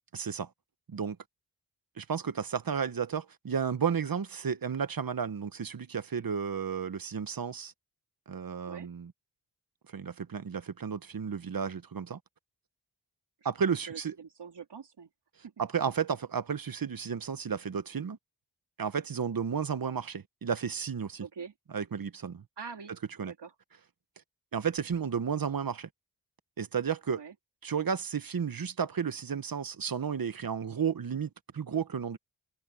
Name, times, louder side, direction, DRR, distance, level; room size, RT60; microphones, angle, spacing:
voice 1, 0.1-0.5 0.9-1.2 2.0-7.7 8.3-9.1 9.9-12.2 13.4-14.1 15.6-18.2 18.8-21.2 21.7-22.4 23.2-23.3 24.5-25.9 26.6-27.2 27.6-32.2, right 7 dB, 60° right, 1.2 m, -32 dB
voice 2, 13.4-15.1 15.4-15.5 21.2-21.5 22.6-22.9 23.2-23.5 27.1-27.3, right 6 dB, 80° right, 3.4 m, -44 dB
cardioid pair, 50°, 41 cm